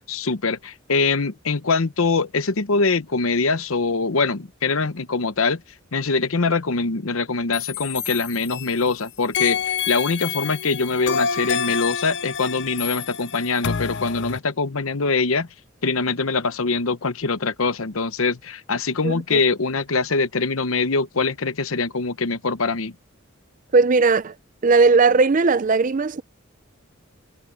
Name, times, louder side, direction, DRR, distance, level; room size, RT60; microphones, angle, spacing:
voice 1, 0.1-5.6 5.9-15.5 15.8-22.9, left 4 dB, 80° left, 1.0 m, -23 dB
sound 1, 7.5-8.9 9.3-14.4, left 7 dB, 55° left, 0.7 m, -28 dB
voice 2, 19.0-19.4 23.7-24.3 24.6-26.2, right 4 dB, 40° right, 0.5 m, -17 dB
head